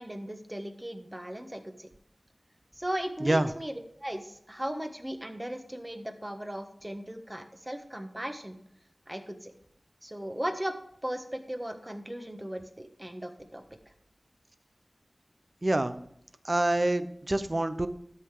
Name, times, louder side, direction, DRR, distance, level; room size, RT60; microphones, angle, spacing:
voice 1, 0.0-1.9 2.7-8.6 9.1-9.5 10.0-10.7 11.0-13.6, right 1 dB, 20° right, 6 dB, 1.3 m, -37 dB
voice 2, 15.6-16.0 16.4-17.9, right 1 dB, 40° right, 10 dB, 0.8 m, -26 dB
13.0 x 5.7 x 4.9 m, 0.70 s
wide cardioid pair, 55°, 0 cm